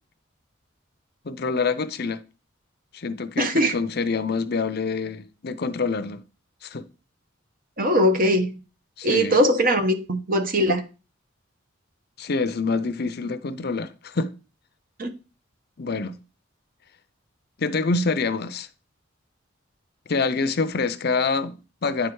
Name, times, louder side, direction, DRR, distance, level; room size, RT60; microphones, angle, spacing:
voice 1, 1.2-2.2 2.9-6.2 6.6-6.9 9.0-9.4 12.2-14.3 15.8-16.2 17.6-18.7 20.1-22.1, left 4 dB, 50° left, 0.6 m, -26 dB
voice 2, 3.4-3.7 7.8-8.6 9.0-10.8 15.0-15.1, equal, 45° right, 1.1 m, -20 dB
9.9 x 4.4 x 4.7 m
head